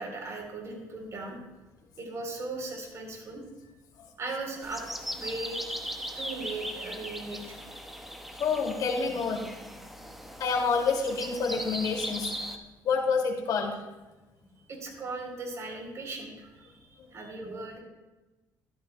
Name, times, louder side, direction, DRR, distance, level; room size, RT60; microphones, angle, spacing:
voice 1, 0.0-1.4 2.0-3.4 4.2-4.8 5.1-5.6 6.2-7.6 14.7-17.8, right 3 dB, 45° right, 1 dB, 3.5 m, -38 dB
sound 1, 4.6-12.6, equal, ahead, 1.0 m, -39 dB
voice 2, 8.4-9.8 10.4-12.3 12.8-13.8, left 5 dB, 60° left, 1 dB, 2.3 m, -28 dB
14.0 x 12.0 x 2.2 m, 1.1 s
cardioid pair, 105°, 7 cm